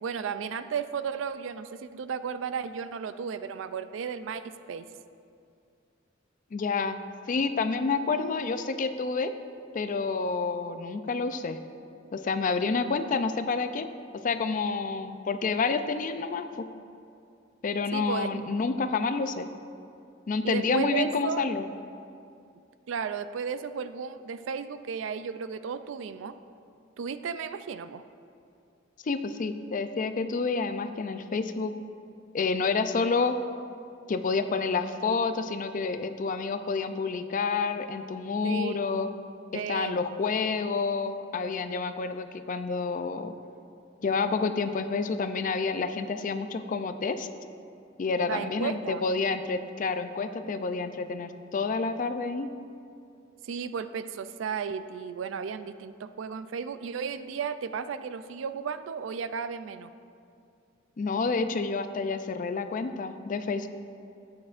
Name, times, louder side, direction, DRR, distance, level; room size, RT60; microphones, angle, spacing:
voice 1, 0.0-4.9 17.9-18.4 20.4-21.4 22.9-26.3 27.0-28.0 38.4-38.8 39.5-39.9 48.3-49.0 53.4-59.9, right 6 dB, 70° right, 12 dB, 0.4 m, -34 dB
voice 2, 6.5-7.0 7.3-9.3 9.7-11.6 12.1-13.9 14.2-16.7 17.6-19.5 20.3-21.6 29.0-31.7 32.3-33.4 34.1-39.1 39.5-43.3 44.0-47.3 48.0-52.5 61.0-63.7, left 4 dB, 40° left, 10 dB, 0.4 m, -29 dB
13.0 x 8.5 x 2.5 m, 2.5 s
head